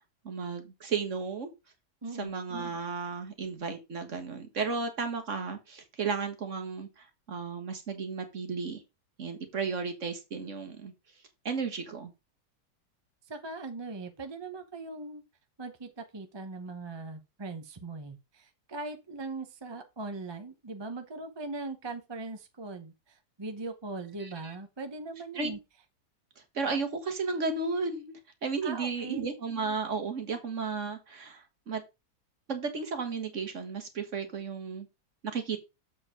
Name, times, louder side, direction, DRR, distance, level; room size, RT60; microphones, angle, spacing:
voice 1, 0.3-1.5 2.2-8.8 9.2-10.9 11.5-12.1 24.2-24.5 25.4-25.5 26.6-28.1 28.4-31.8 32.5-34.9 35.2-35.6, right 4 dB, 45° right, 1.6 m, -34 dB
voice 2, 13.3-15.2 15.6-22.9 23.4-25.6 28.6-29.3, right 3 dB, 25° right, 0.7 m, -40 dB
7.5 x 4.7 x 4.9 m
omnidirectional pair, 1.8 m